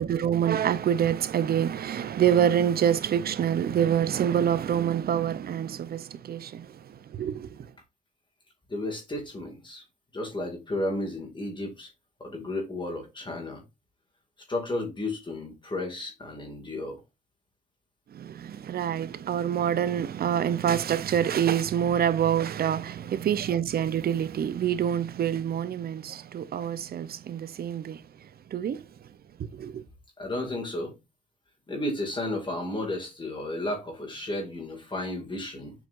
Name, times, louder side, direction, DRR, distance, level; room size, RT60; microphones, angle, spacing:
voice 1, 0.0-6.7 7.1-7.5 18.1-28.0 28.5-28.8 29.5-29.8, right 9 dB, 50° right, 0.7 m, -26 dB
voice 2, 8.7-9.8 10.1-11.9 12.2-13.6 14.5-17.0 30.2-31.0 31.7-35.7, left 1 dB, 25° left, 2.2 m, -33 dB
7.8 x 4.7 x 2.5 m
cardioid pair, 90°, 20 cm